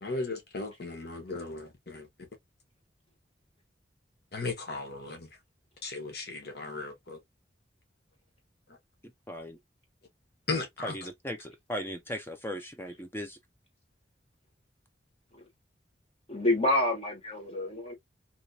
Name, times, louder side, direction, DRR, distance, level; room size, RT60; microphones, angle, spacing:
voice 1, 0.0-2.3 4.3-5.3 5.8-7.2 10.5-11.0, left 3 dB, 60° left, 1.2 m, -36 dB
voice 2, 9.3-9.6 10.8-13.4, equal, 15° left, 0.5 m, -37 dB
voice 3, 16.3-17.9, left 1 dB, 35° left, 1.1 m, -28 dB
2.9 x 2.9 x 2.7 m
head